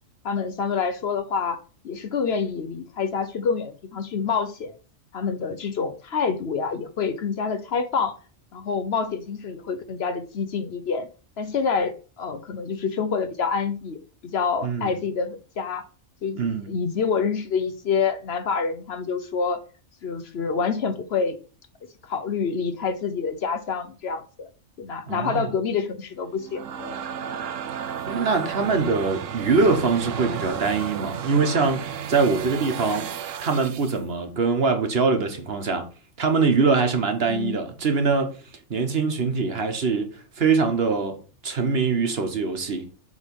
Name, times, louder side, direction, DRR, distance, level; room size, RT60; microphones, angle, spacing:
voice 1, 0.2-1.6 1.8-4.7 5.1-8.1 8.5-11.1 11.4-15.8 16.2-19.6 20.0-21.4 22.0-24.5 24.8-27.0 37.3-37.6, left 5 dB, 60° left, 0.9 m, -27 dB
voice 2, 14.6-14.9 16.4-16.7 25.1-25.5 28.1-33.1 33.4-35.9 36.2-38.4 38.7-40.1 40.4-41.2 41.4-42.9, right 4 dB, 55° right, 1.3 m, -23 dB
sound 1, 26.3-34.0, right 8 dB, 80° right, 1.0 m, -33 dB
7.4 x 3.6 x 5.3 m
omnidirectional pair, 1.3 m